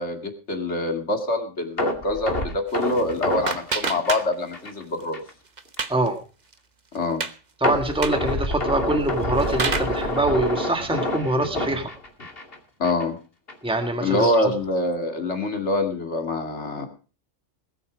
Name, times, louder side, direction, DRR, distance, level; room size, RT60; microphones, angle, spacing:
voice 1, 0.0-5.2 6.9-7.2 12.8-13.2 14.0-16.9, left 2 dB, 65° left, 5 dB, 2.7 m, -25 dB
sound 1, 1.8-4.8 5.1-5.3 5.8-5.9 7.6-12.5 12.8-13.0 13.5-13.6, left 1 dB, 50° left, 2.9 m, -28 dB
sound 2, 2.7-4.7 5.0-6.1 6.5-6.6 6.9-7.4 7.9-8.3 9.0-10.0, right 4 dB, 40° right, 1.1 m, -30 dB
voice 2, 7.6-11.9 13.6-14.3, right 2 dB, 5° right, 5 dB, 1.7 m, -24 dB
20.0 x 8.6 x 5.1 m, 0.37 s
omnidirectional pair, 1.3 m